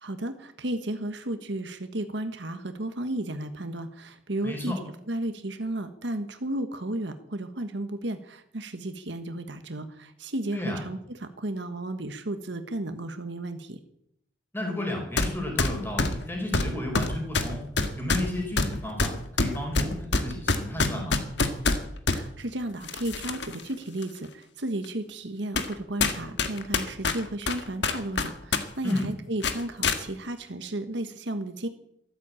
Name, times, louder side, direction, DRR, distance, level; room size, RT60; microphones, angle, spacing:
voice 1, 0.0-4.7 5.1-13.8 22.1-31.7, right 1 dB, 65° right, 8 dB, 1.4 m, -33 dB
voice 2, 4.4-4.8 10.5-10.8 14.5-17.6 18.0-19.1 19.4-21.2 28.8-29.1, left 1 dB, 10° left, 1 dB, 4.6 m, -32 dB
sound 1, 15.2-15.3 15.6-22.2 22.8-23.6 24.0-24.1 24.8-24.9 25.6-25.7 26.0-28.6 28.9-29.0 29.4-30.0, left 3 dB, 65° left, 1.6 m, -26 dB
14.0 x 12.0 x 8.5 m, 0.74 s
head